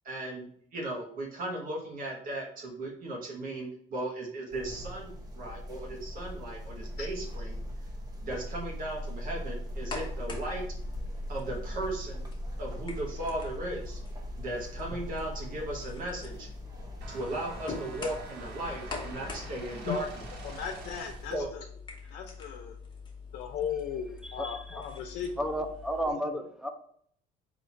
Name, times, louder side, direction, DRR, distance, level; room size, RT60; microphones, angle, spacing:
voice 1, 0.0-7.6 8.2-10.6 11.3-12.3 12.6-14.0 14.4-16.5 17.1-20.1 21.3-21.5, right 1 dB, 55° right, -1 dB, 1.2 m, -36 dB
sound 1, 4.5-21.4, equal, 20° right, 1.0 m, -41 dB
sound 2, 9.6-26.1, left 4 dB, 30° left, 1.1 m, -45 dB
sound 3, 17.0-21.4, right 4 dB, 80° right, 1.7 m, -47 dB
voice 2, 20.4-21.6 22.1-22.7 23.3-25.4 26.1-26.4, left 8 dB, 75° left, 3 dB, 0.6 m, -37 dB
voice 3, 24.2-24.8 25.4-26.7, equal, 5° right, 6 dB, 0.5 m, -33 dB
4.1 x 2.9 x 4.4 m, 0.62 s
cardioid pair, 110°, 17 cm